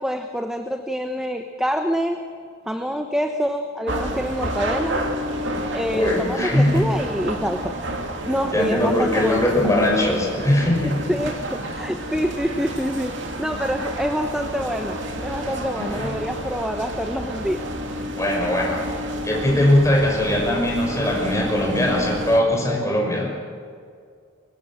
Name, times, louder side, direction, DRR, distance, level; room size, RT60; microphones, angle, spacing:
voice 1, 0.0-2.2 2.7-5.0 5.7-7.8 8.2-9.7 11.1-17.7, equal, 5° right, 5 dB, 0.9 m, -26 dB
sound 1, 3.9-22.4, right 1 dB, 60° right, 2.9 m, -30 dB
voice 2, 5.9-6.9 8.5-11.0 15.8-16.1 18.0-18.8 19.2-23.3, left 1 dB, 15° left, -1 dB, 5.7 m, -20 dB
24.0 x 23.0 x 7.5 m, 2.2 s
head